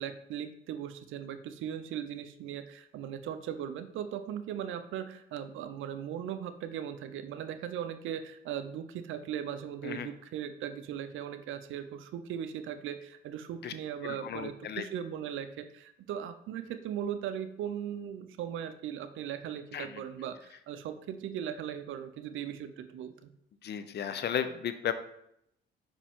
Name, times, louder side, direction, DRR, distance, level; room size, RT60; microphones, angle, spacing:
voice 1, 0.0-23.3, right 9 dB, 80° right, 10 dB, 0.6 m, -38 dB
voice 2, 14.0-14.8 19.7-20.0 23.6-24.9, left 9 dB, 55° left, 11 dB, 0.6 m, -34 dB
5.4 x 4.9 x 3.6 m, 0.78 s
cardioid pair, 90°, 20 cm